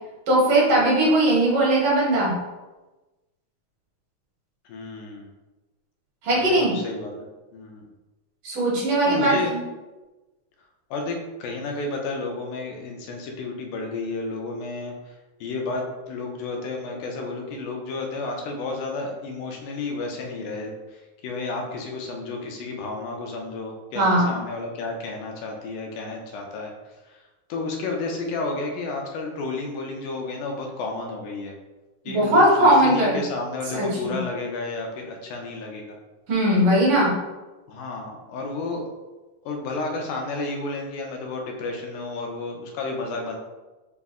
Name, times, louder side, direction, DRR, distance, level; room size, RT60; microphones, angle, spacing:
voice 1, 0.3-2.4 6.2-6.8 8.4-9.6 23.9-24.3 32.1-33.2 33.7-34.2 36.3-37.1, right 1 dB, 60° right, -5 dB, 1.9 m, -19 dB
voice 2, 4.7-5.3 6.4-7.2 7.5-7.9 9.1-9.5 10.9-26.8 27.1-27.2 27.5-31.6 32.1-36.0 37.0-37.1 37.7-38.9 39.4-43.4, left 3 dB, 90° left, 1 dB, 2.2 m, -31 dB
5.4 x 2.0 x 3.5 m, 1.1 s
omnidirectional pair, 3.5 m